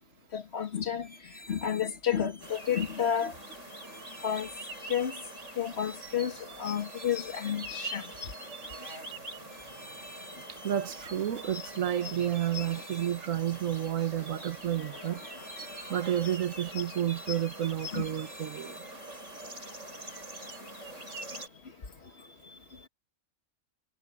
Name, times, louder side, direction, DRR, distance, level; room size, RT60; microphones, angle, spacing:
voice 1, 0.3-1.1 1.5-3.3 4.2-4.5 4.9-5.1 5.6-8.1 12.1-12.3 14.8-15.3 15.7-15.8 16.1-16.2 17.9-18.0, left 9 dB, 55° left, 1.7 m, -31 dB
sound 1, 1.0-2.6 3.0-3.3 3.8-5.4 5.8-6.1 6.7-8.3 8.7-8.9 9.5-11.1 11.4-11.8 12.3-13.9 14.3-14.6 15.1-16.7 17.1-17.4 17.9-19.5 20.0-20.2, equal, 5° left, 6.9 m, -51 dB
sound 2, 2.4-21.5, right 1 dB, 70° right, 8.0 m, -43 dB
voice 2, 10.6-15.2 15.9-18.7, right 11 dB, 90° right, 1.5 m, -31 dB
omnidirectional pair, 1.3 m